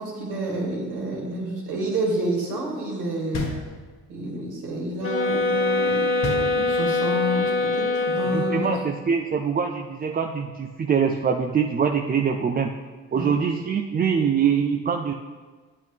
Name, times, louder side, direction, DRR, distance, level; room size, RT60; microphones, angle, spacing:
voice 1, 0.0-3.5 4.1-8.8 13.1-13.3, right 1 dB, 85° right, -2 dB, 2.1 m, -29 dB
sound 1, 3.3-4.3 6.2-7.1, left 1 dB, 60° left, 1.5 m, -32 dB
sound 2, 5.0-8.9, left 3 dB, 45° left, 1.1 m, -24 dB
voice 2, 8.3-12.7 13.1-15.1, right 6 dB, 30° right, 3 dB, 0.5 m, -24 dB
8.6 x 8.5 x 3.4 m, 1.4 s
cardioid pair, 90°, 30 cm